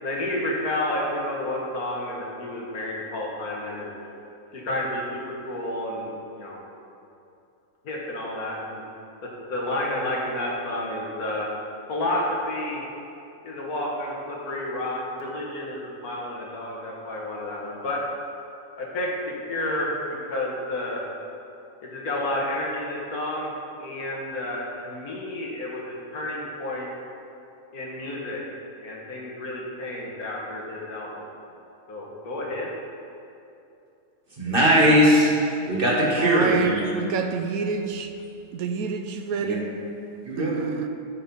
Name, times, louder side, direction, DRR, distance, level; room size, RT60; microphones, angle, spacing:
voice 1, 0.0-3.9 4.5-6.6 7.8-8.8 9.2-11.5 11.9-12.8 13.4-18.0 18.8-20.0 20.2-21.0 21.8-23.5 23.8-26.9 27.7-28.4 28.8-31.3 31.9-32.7, left 1 dB, 80° left, -3 dB, 2.0 m, -30 dB
voice 2, 34.4-36.9 39.4-39.6 40.3-40.5, equal, 40° right, -4 dB, 1.8 m, -20 dB
voice 3, 36.2-36.7 37.0-38.1 38.6-39.7 40.4-40.9, right 6 dB, 80° right, 6 dB, 1.1 m, -27 dB
12.5 x 4.4 x 5.4 m, 2.7 s
omnidirectional pair, 1.5 m